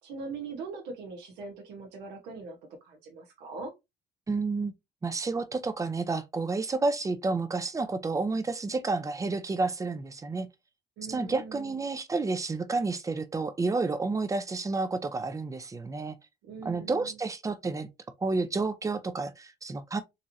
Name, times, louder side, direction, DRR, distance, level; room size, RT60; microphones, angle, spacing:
voice 1, 0.0-3.7 11.0-11.8 16.4-17.2, right 4 dB, 90° right, 1.1 m, -41 dB
voice 2, 4.3-4.7 5.0-10.5 11.1-16.2 16.6-17.9 18.2-20.0, right 3 dB, 20° right, 0.6 m, -30 dB
3.9 x 3.0 x 2.6 m
cardioid pair, 110°, 17 cm